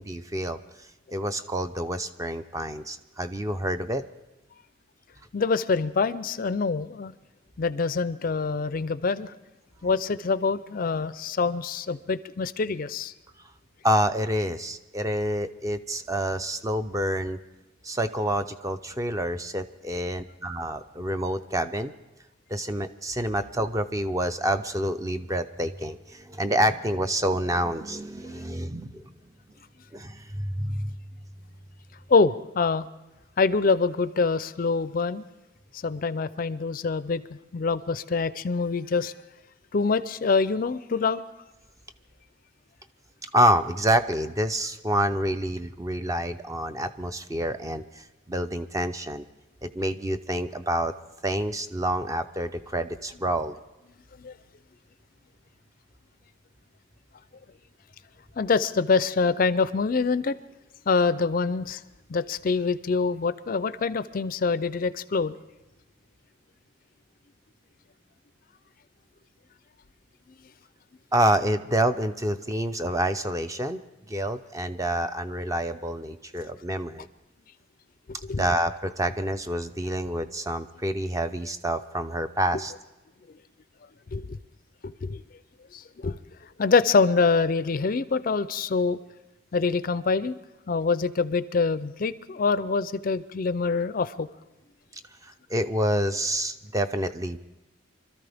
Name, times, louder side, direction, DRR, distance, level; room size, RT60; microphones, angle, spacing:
voice 1, 0.0-4.0 13.8-17.4 17.8-21.9 22.5-29.1 29.9-30.9 43.3-49.2 49.6-50.9 51.2-53.5 71.1-73.8 74.1-77.1 78.4-82.7 95.2-97.4, right 1 dB, 15° right, 9 dB, 0.5 m, -27 dB
voice 2, 5.3-7.1 7.6-9.3 9.8-13.1 32.1-32.9 33.4-35.2 35.7-37.2 37.5-39.1 39.7-41.2 54.2-54.3 58.4-60.4 60.9-61.8 62.1-65.4 78.3-78.4 84.1-84.4 84.8-85.2 85.7-86.2 86.6-89.0 89.5-90.3 90.7-94.3, left 4 dB, 40° left, 14 dB, 0.4 m, -25 dB
25.5 x 13.5 x 3.4 m, 1.1 s
head